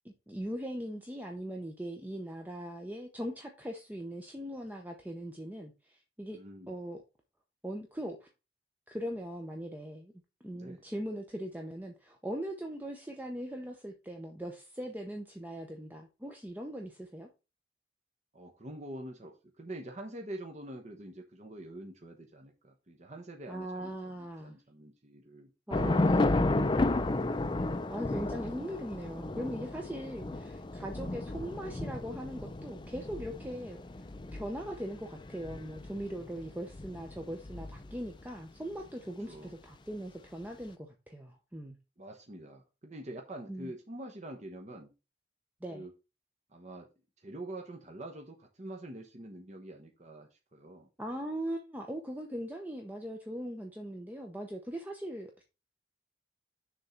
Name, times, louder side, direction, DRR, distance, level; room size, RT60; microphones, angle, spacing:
voice 1, 0.0-6.4 6.7-7.0 7.6-8.3 8.9-10.1 10.4-17.3 23.5-24.6 25.7-26.7 27.9-34.1 34.3-41.8 43.5-43.7 45.6-45.8 51.0-55.4, equal, 10° right, 0.8 m, -40 dB
voice 2, 6.3-6.8 10.5-10.8 18.3-26.9 39.3-39.5 42.0-44.9 45.7-45.9 46.5-46.9 47.2-50.9, right 1 dB, 40° right, 1.0 m, -46 dB
Thunder / Rain, 25.7-38.2, left 2 dB, 25° left, 0.4 m, -33 dB
6.7 x 3.8 x 5.8 m
head